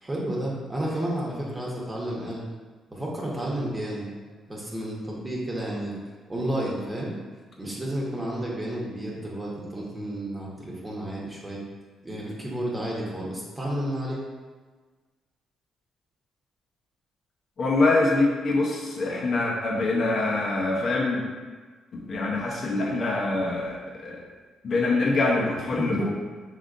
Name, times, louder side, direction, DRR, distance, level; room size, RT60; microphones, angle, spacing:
voice 1, 0.0-2.4 2.9-4.1 4.5-5.9 6.3-7.1 7.6-11.6 12.0-14.2 25.8-26.1, right 1 dB, 20° right, -5 dB, 1.1 m, -31 dB
voice 2, 17.6-21.2 21.9-24.2 24.6-26.1, left 2 dB, 50° left, -3 dB, 0.8 m, -24 dB
5.1 x 3.7 x 2.5 m, 1.4 s
cardioid pair, 90°, 0 cm